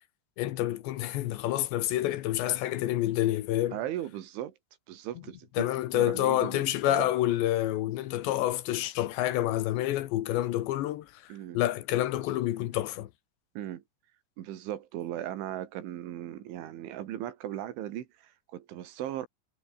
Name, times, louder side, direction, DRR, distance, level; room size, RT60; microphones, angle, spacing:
voice 1, 0.4-3.8 5.6-13.1, left 14 dB, 75° left, 3.3 m, -28 dB
voice 2, 3.7-4.5 4.9-5.7 5.9-7.1 11.3-11.6 13.6-13.8 14.4-19.3, right 12 dB, 85° right, 4.4 m, -37 dB
omnidirectional pair, 5.4 m